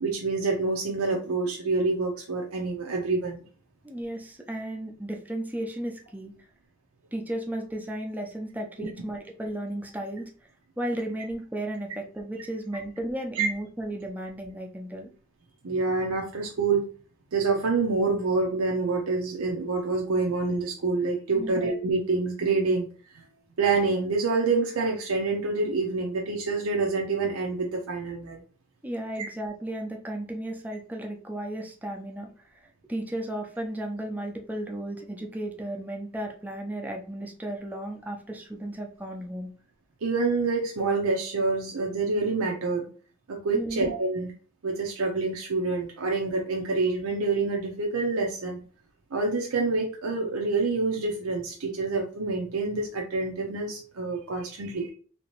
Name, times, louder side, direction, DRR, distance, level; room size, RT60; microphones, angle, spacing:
voice 1, 0.0-3.4 13.3-13.5 15.6-16.9 17.3-22.9 23.1-23.2 23.6-28.4 40.0-42.9 43.3-44.3 44.6-48.6 49.1-54.9, right 3 dB, 90° right, 0 dB, 0.6 m, -27 dB
voice 2, 3.8-6.3 7.1-10.3 10.8-15.1 21.3-21.6 28.8-32.3 32.9-39.5 43.5-43.8, right 1 dB, 10° right, 1 dB, 0.6 m, -34 dB
3.3 x 2.9 x 3.0 m, 0.40 s
head